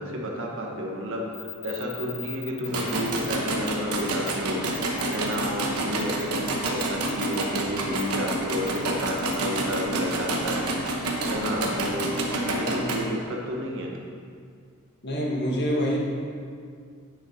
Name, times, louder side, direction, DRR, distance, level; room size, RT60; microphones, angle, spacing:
voice 1, 0.0-10.6 11.3-13.9, equal, 60° right, -1 dB, 1.3 m, -31 dB
sound 1, 1.3-3.4 3.7-3.8 4.0-4.3 4.7-5.4 6.0-6.2 6.6-7.5 8.0-8.1 8.7-8.8 9.2-9.3, left 13 dB, 85° left, 0.6 m, -39 dB
sound 2, 2.6-13.0, right 2 dB, 80° right, 1.2 m, -28 dB
voice 2, 15.0-16.0, equal, 50° left, -3 dB, 1.6 m, -25 dB
9.0 x 6.8 x 4.4 m, 2.2 s
head